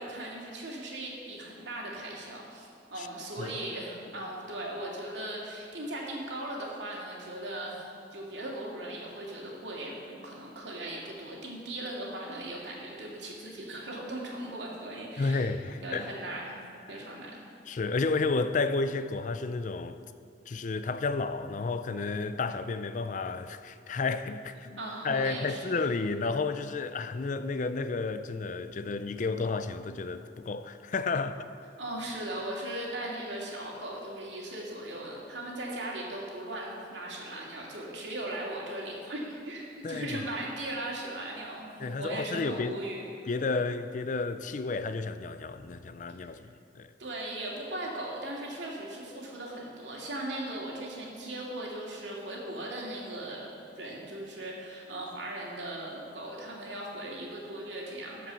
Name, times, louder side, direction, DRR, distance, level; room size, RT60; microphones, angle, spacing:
voice 1, 0.0-16.6 16.9-17.4 24.8-25.8 31.8-43.1 47.0-58.3, right 1 dB, 90° right, 2.3 m, -38 dB
voice 2, 15.2-16.1 17.7-20.0 20.5-24.8 25.0-31.4 39.8-40.2 41.8-42.8 43.3-46.9, left 3 dB, 45° left, 0.4 m, -31 dB
13.0 x 5.3 x 7.1 m
head